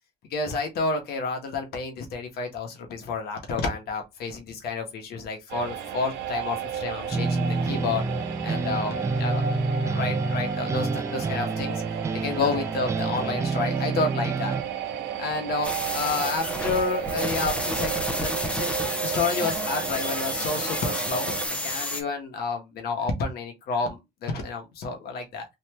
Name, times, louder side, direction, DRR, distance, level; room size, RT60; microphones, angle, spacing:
voice 1, 0.3-8.0 8.4-9.4 9.8-11.8 12.1-14.5 15.2-25.5, left 4 dB, 70° left, 1.7 m, -30 dB
sound 1, 5.5-21.5, right 8 dB, 80° right, 0.9 m, -33 dB
sound 2, 7.1-14.6, right 3 dB, 15° right, 0.3 m, -28 dB
sound 3, 15.6-22.0, equal, 5° left, 1.0 m, -30 dB
4.2 x 2.8 x 3.2 m
cardioid pair, 110°, 17 cm